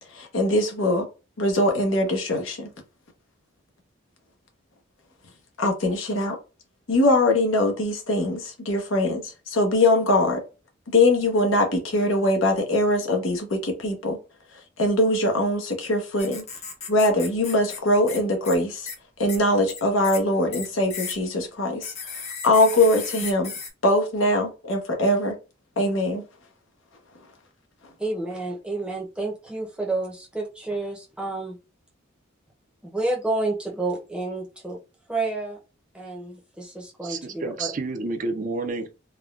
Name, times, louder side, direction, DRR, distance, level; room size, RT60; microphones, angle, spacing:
voice 1, 0.1-1.1 1.4-2.7 5.6-6.3 6.9-9.2 9.5-10.4 10.9-14.2 14.8-16.4 16.9-18.9 19.2-21.9 22.4-23.5 23.8-25.3 25.8-26.2, left 1 dB, 80° left, 0.9 m, -22 dB
sound 1, 16.2-17.8 18.1-18.2 18.4-18.6 18.9-19.0 19.3-19.4 19.7-20.2 20.5-21.1 21.8-23.7, left 5 dB, 35° left, 0.6 m, -35 dB
voice 2, 28.0-31.6 32.8-34.8 35.1-35.6 35.9-37.7, right 2 dB, 5° right, 0.7 m, -30 dB
voice 3, 37.0-38.9, right 3 dB, 40° right, 0.4 m, -30 dB
3.5 x 2.2 x 2.4 m
head